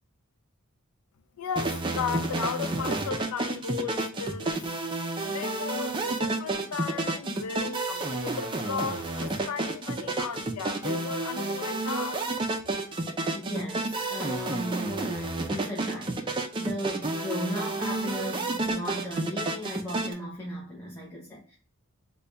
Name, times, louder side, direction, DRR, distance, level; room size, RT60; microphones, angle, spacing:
voice 1, 1.4-4.6 5.3-12.2, left 6 dB, 80° left, 0.4 m, -35 dB
sound 1, 1.6-20.1, right 2 dB, 20° right, 0.4 m, -30 dB
voice 2, 13.3-21.5, equal, 15° left, 0.8 m, -36 dB
3.3 x 2.3 x 3.9 m
head